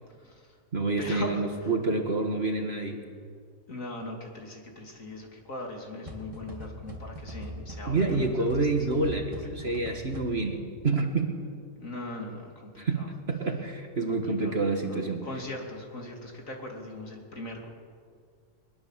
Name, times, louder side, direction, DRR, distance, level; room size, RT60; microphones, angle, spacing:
voice 1, 0.2-0.6 1.0-1.7 3.7-8.7 9.4-9.8 11.8-13.1 14.1-17.7, left 2 dB, 45° left, 1 dB, 3.2 m, -40 dB
voice 2, 0.7-3.0 7.9-11.4 12.8-15.3, right 3 dB, 35° right, 4 dB, 1.8 m, -28 dB
sound 1, 6.1-10.7, equal, 20° right, 2.5 m, -42 dB
21.5 x 21.0 x 7.5 m, 2.1 s
omnidirectional pair, 1.9 m